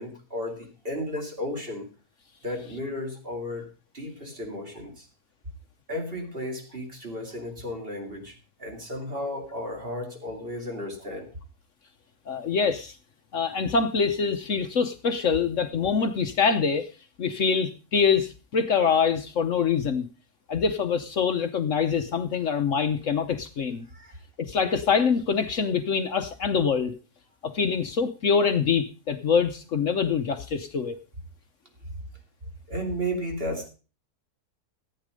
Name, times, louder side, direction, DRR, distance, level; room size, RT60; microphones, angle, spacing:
voice 1, 0.0-1.9 2.4-3.7 3.9-5.1 5.9-11.3 23.9-24.2 32.7-33.7, equal, 35° right, 3 dB, 3.0 m, -34 dB
voice 2, 12.3-13.0 13.3-16.9 17.2-20.1 20.5-23.9 24.4-26.9 27.4-31.0, left 6 dB, 60° left, 8 dB, 1.1 m, -25 dB
14.0 x 9.1 x 5.1 m, 0.34 s
omnidirectional pair, 1.6 m